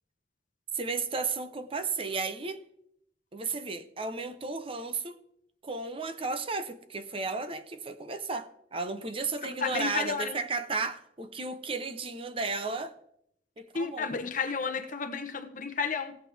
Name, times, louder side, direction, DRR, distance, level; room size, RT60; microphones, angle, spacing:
voice 1, 0.7-2.6 3.3-5.1 5.6-12.9 13.6-14.1, right 4 dB, 30° right, 0.6 m, -34 dB
voice 2, 9.4-10.4 13.7-16.2, left 5 dB, 45° left, 1.0 m, -32 dB
16.0 x 8.0 x 3.4 m
head